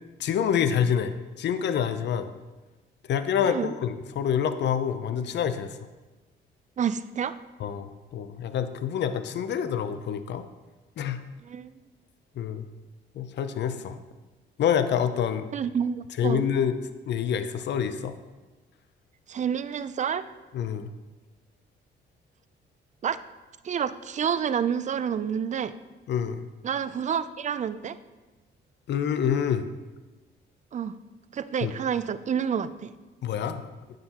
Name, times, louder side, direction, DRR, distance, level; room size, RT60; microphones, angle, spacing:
voice 1, 0.2-2.3 3.1-5.8 7.6-10.4 11.0-11.2 12.4-12.7 13.1-14.0 14.6-15.5 16.2-16.8 17.1-18.1 20.5-20.9 26.1-26.5 28.9-29.7 31.6-31.7 33.2-33.6, left 8 dB, 60° left, 11 dB, 0.6 m, -27 dB
voice 2, 6.8-7.4 11.4-11.8 15.5-16.4 19.3-20.3 23.0-23.2 23.6-25.8 26.6-28.0 30.7-30.9 31.3-32.9, right 7 dB, 40° right, 14 dB, 0.4 m, -29 dB
9.5 x 7.7 x 2.9 m, 1.2 s
cardioid pair, 90°, 20 cm